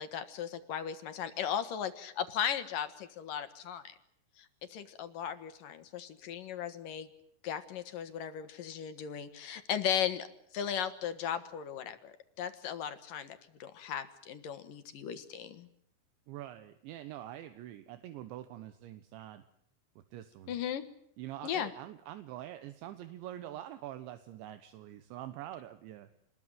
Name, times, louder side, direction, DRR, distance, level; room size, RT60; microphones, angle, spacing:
voice 1, 0.0-3.8 4.4-7.1 7.4-10.3 10.5-15.7 20.5-20.8 21.4-21.7, left 9 dB, 60° left, 10 dB, 2.7 m, -37 dB
voice 2, 16.3-19.4 20.1-20.6 21.2-26.1, right 13 dB, 80° right, 11 dB, 3.5 m, -45 dB
28.0 x 21.0 x 9.2 m, 0.68 s
omnidirectional pair, 5.3 m